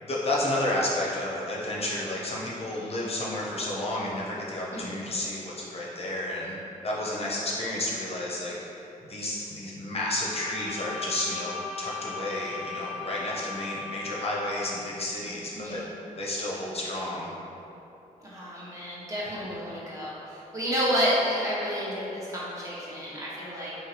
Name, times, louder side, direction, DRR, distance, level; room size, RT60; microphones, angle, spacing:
voice 1, 0.0-6.5 6.8-15.8 16.2-17.3, left 1 dB, 45° left, -5 dB, 0.6 m, -31 dB
voice 2, 4.7-5.0 15.6-15.9 18.2-23.8, equal, 20° right, -8 dB, 1.1 m, -30 dB
Bowed string instrument, 10.2-14.9, left 4 dB, 5° left, 0.7 m, -38 dB
3.8 x 3.1 x 2.9 m, 3.0 s
cardioid pair, 75°, 15 cm